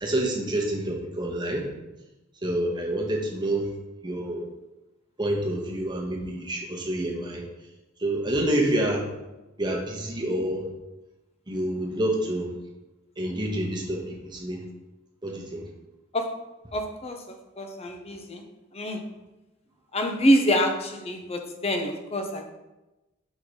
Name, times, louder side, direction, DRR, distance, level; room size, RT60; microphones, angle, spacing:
voice 1, 0.0-1.7 2.4-3.7 4.0-4.5 5.2-7.4 8.0-9.1 9.6-10.7 11.5-12.5 13.2-14.6 15.2-15.6, right 1 dB, 20° right, -1 dB, 1.0 m, -28 dB
voice 2, 16.7-17.2 17.6-18.4 18.7-19.0 19.9-22.5, equal, 30° left, 5 dB, 0.6 m, -25 dB
5.4 x 3.7 x 4.8 m, 1.0 s
head